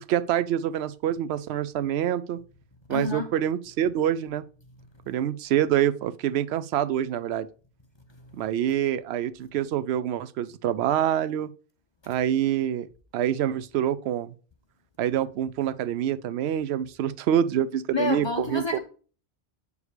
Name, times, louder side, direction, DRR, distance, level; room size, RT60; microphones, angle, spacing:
voice 1, 0.0-2.4 2.9-4.4 5.1-7.5 8.4-11.5 12.1-12.9 13.1-14.3 15.0-18.6, right 10 dB, 75° right, 0.8 m, -26 dB
voice 2, 2.9-3.3 17.9-18.8, left 3 dB, 25° left, 0.9 m, -28 dB
7.1 x 4.8 x 4.9 m
omnidirectional pair, 1.1 m